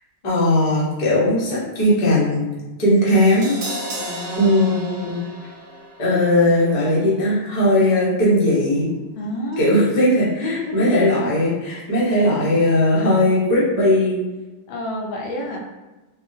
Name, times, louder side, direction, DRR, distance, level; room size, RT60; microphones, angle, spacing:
voice 1, 0.2-2.4 2.8-3.6 4.4-5.2 6.0-8.9 9.6-14.2, left 1 dB, 35° left, -8 dB, 0.6 m, -18 dB
Crash cymbal, 3.1-9.2 9.5-9.6, right 1 dB, 60° right, 0.8 m, -36 dB
voice 2, 4.0-5.2 9.2-9.9 10.4-11.1 11.7-11.9 14.7-15.6, left 1 dB, 75° left, -1 dB, 1.3 m, -30 dB
4.3 x 2.2 x 2.7 m, 1.1 s
omnidirectional pair, 2.2 m